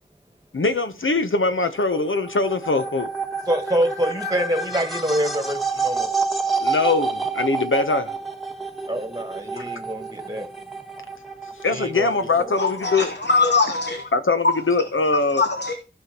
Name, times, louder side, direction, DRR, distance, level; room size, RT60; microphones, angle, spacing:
voice 1, 0.5-3.1 6.6-8.2 9.6-9.7 11.6-13.1 14.1-15.4, left 3 dB, 90° left, 0.8 m, -22 dB
sound 1, 1.8-13.0, right 4 dB, ahead, 1.2 m, -29 dB
voice 2, 3.5-6.1 8.9-10.5 11.7-12.1 12.4-12.5, equal, 20° right, 1.3 m, -25 dB
voice 3, 12.6-14.1 14.4-14.5 15.3-15.7, left 3 dB, 60° left, 1.0 m, -21 dB
16.0 x 5.6 x 2.9 m
wide cardioid pair, 50°, 20 cm